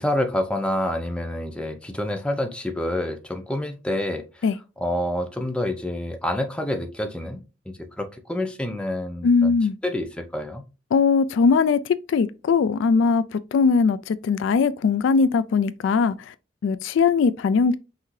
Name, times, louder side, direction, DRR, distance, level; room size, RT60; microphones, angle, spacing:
voice 1, 0.0-4.5 4.8-9.5 9.8-10.6, left 1 dB, 5° left, 0.6 m, -28 dB
voice 2, 9.2-9.7 10.9-11.8 12.1-16.1 16.6-17.8, left 5 dB, 65° left, 0.3 m, -20 dB
5.7 x 2.7 x 3.1 m
head